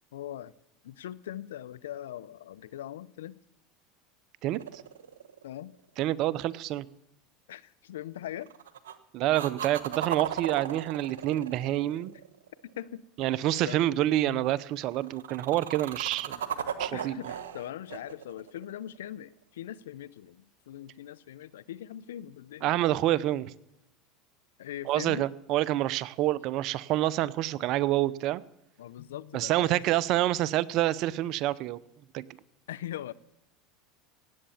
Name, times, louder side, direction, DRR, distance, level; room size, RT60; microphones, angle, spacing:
voice 1, 0.1-0.5 0.8-3.4 5.4-5.7 7.5-8.5 12.8-13.0 13.3-13.8 14.3-14.5 16.9-22.7 24.6-25.3 28.8-30.0 32.7-33.1, left 12 dB, 85° left, 19 dB, 0.6 m, -41 dB
sound 1, 4.5-5.8 8.4-9.0 9.3-12.6 14.9-19.2 23.0-23.1, right 9 dB, 90° right, 1.1 m, -37 dB
voice 2, 6.0-6.9 9.1-12.1 13.2-16.4 16.8-17.2 22.6-23.5 24.9-28.4 29.3-31.8 32.1-32.2, right 14 dB, 55° right, 18 dB, 0.7 m, -27 dB
17.5 x 8.9 x 7.0 m, 0.85 s
hypercardioid pair, 100°, 0 cm